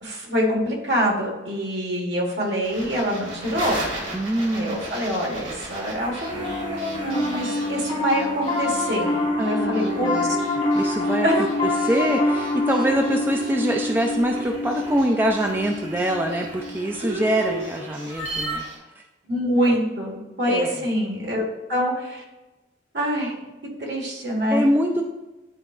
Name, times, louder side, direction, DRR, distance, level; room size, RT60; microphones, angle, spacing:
voice 1, 0.0-3.9 4.5-9.1 9.4-10.4 11.2-11.5 17.0-17.6 19.3-22.2 22.9-23.4 23.8-24.7, equal, 65° right, -1 dB, 1.6 m, -25 dB
sound 1, 2.6-18.8, right 1 dB, 85° right, 2.1 m, -37 dB
voice 2, 4.1-4.8 9.4-10.4 10.7-11.3 11.8-18.6 19.7-19.8 20.5-20.7 24.5-25.0, right 1 dB, 10° right, 2 dB, 0.3 m, -24 dB
Piano, 6.3-17.8, left 2 dB, 30° left, 1.7 m, -26 dB
10.0 x 3.8 x 2.5 m, 1.1 s
head